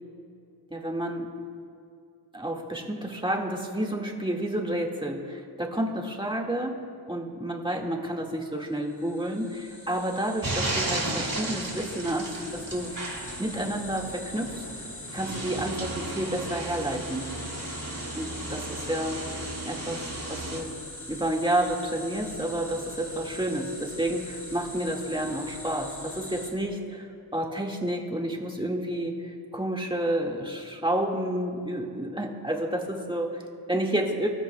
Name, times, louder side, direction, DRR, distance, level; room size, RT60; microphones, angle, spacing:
voice 1, 0.7-1.3 2.3-12.9 13.4-14.9 15.1-17.3 18.1-19.2 19.7-20.7 21.1-34.3, right 1 dB, 10° right, 0 dB, 1.9 m, -30 dB
sound 1, 8.8-26.5, left 1 dB, 40° left, 2.7 m, -42 dB
sound 2, 10.4-20.6, right 2 dB, 50° right, 2.8 m, -35 dB
24.5 x 12.5 x 2.3 m, 2.4 s
cardioid pair, 40°, 43 cm